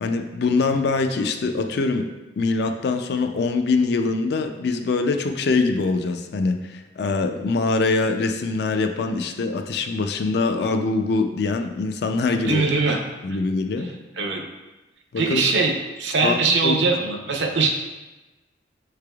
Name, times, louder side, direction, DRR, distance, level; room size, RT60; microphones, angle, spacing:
voice 1, 0.0-2.1 2.4-12.6 13.2-13.9 15.1-15.4 16.2-16.8, left 3 dB, 60° left, 6 dB, 0.4 m, -23 dB
voice 2, 12.4-13.0 13.8-13.9 14.2-14.4 15.2-17.7, right 4 dB, 70° right, 2 dB, 0.6 m, -22 dB
6.6 x 3.3 x 2.3 m, 1.1 s
head